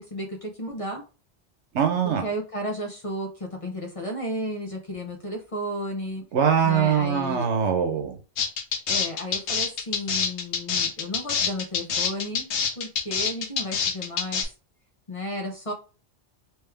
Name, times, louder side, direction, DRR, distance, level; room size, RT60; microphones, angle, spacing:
voice 1, 0.1-1.0 2.0-6.2 6.6-7.5 8.9-12.5 12.8-14.4 15.1-15.7, equal, 35° left, 0.7 m, -33 dB
voice 2, 1.7-2.2 6.3-8.2, right 7 dB, 85° right, 1.1 m, -22 dB
sound 1, 8.4-14.4, left 6 dB, 80° left, 1.0 m, -26 dB
3.5 x 3.1 x 3.3 m
omnidirectional pair, 1.1 m